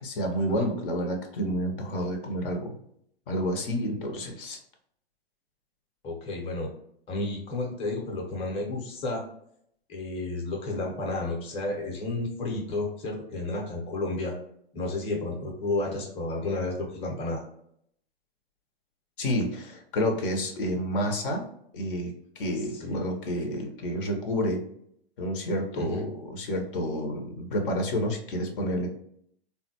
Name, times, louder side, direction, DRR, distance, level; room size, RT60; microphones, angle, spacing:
voice 1, 0.0-2.7 3.3-4.6 19.2-21.4 21.7-24.6 25.2-28.9, equal, 55° left, 3 dB, 0.8 m, -29 dB
voice 2, 6.0-6.7 7.1-9.2 9.9-14.3 14.7-17.4 22.8-22.9 25.8-26.0, left 2 dB, 20° left, -1 dB, 0.8 m, -31 dB
3.5 x 2.2 x 2.8 m, 0.69 s
hypercardioid pair, 120°, 31 cm